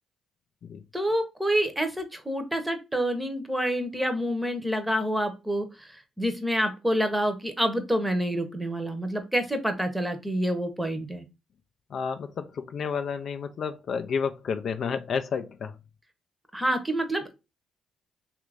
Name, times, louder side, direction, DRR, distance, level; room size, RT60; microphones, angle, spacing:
voice 1, 0.9-11.2 16.5-17.3, equal, 5° right, 0.7 m, -27 dB
voice 2, 11.9-15.8, left 6 dB, 60° left, 0.3 m, -31 dB
3.1 x 2.5 x 3.2 m
cardioid pair, 90°, 0 cm